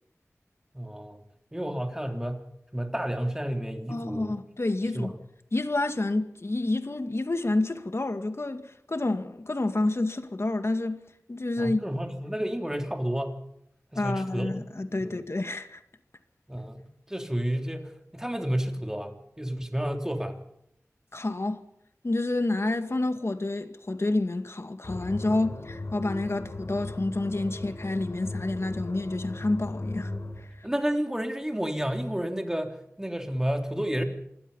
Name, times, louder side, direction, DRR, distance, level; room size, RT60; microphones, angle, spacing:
voice 1, 0.7-1.2 1.5-2.4 2.7-4.4 4.9-5.1 11.6-13.4 13.9-14.5 15.0-15.1 16.5-20.4 30.6-34.0, equal, 10° right, 3.4 m, -31 dB
voice 2, 3.9-5.1 5.5-11.0 11.3-11.8 13.9-15.8 21.1-21.6 22.0-30.1, left 2 dB, 55° left, 2.1 m, -29 dB
sound 1, 24.8-30.5, left 2 dB, 80° left, 6.9 m, -37 dB
27.0 x 20.5 x 5.7 m
wide cardioid pair, 60°, 5 cm